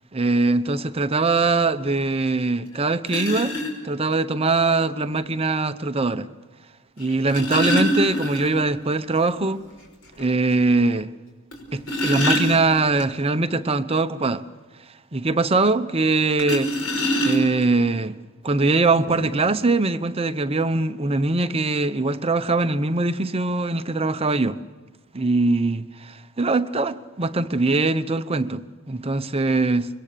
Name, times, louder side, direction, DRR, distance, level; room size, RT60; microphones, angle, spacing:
voice 1, 0.1-3.5 3.8-6.3 7.0-9.6 10.2-11.1 11.7-14.4 15.1-16.7 17.2-18.1 18.4-24.6 25.1-29.9, right 3 dB, 30° right, 0.8 m, -22 dB
sound 1, 2.4-2.5 3.1-3.7 5.1-5.2 7.0-8.7 9.1-9.2 9.6-9.7 10.2-10.3 11.5-13.0 16.4-17.7 18.6-18.7 19.1-19.3, equal, 80° left, 5.8 m, -24 dB
25.5 x 22.5 x 6.8 m
head